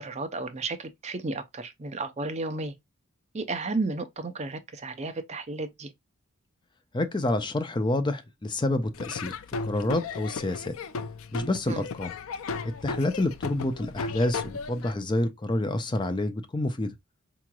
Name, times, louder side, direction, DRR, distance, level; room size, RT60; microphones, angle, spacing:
voice 1, 0.0-2.7 3.3-5.9 11.7-11.8, right 3 dB, 35° right, 0.6 m, -33 dB
voice 2, 6.9-9.4 9.6-10.7 11.3-12.1 12.6-16.9, left 2 dB, 20° left, 0.5 m, -28 dB
Laughter / Drum, 8.9-14.9, left 4 dB, 80° left, 0.4 m, -35 dB
4.9 x 3.0 x 2.2 m
head